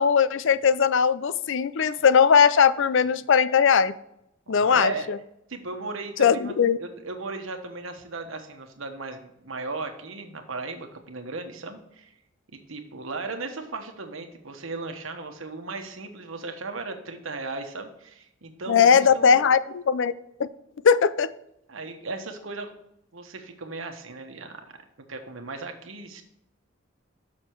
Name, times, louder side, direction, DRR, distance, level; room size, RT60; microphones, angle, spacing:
voice 1, 0.0-3.9 4.5-5.2 6.2-6.8 18.7-20.1 20.8-21.3, left 6 dB, 65° left, 15 dB, 0.4 m, -19 dB
voice 2, 4.5-5.1 5.5-6.5 6.8-12.1 12.5-19.4 21.7-22.7 23.1-24.6 25.1-26.2, right 3 dB, 80° right, 5 dB, 1.2 m, -36 dB
6.4 x 6.3 x 4.5 m, 0.80 s
head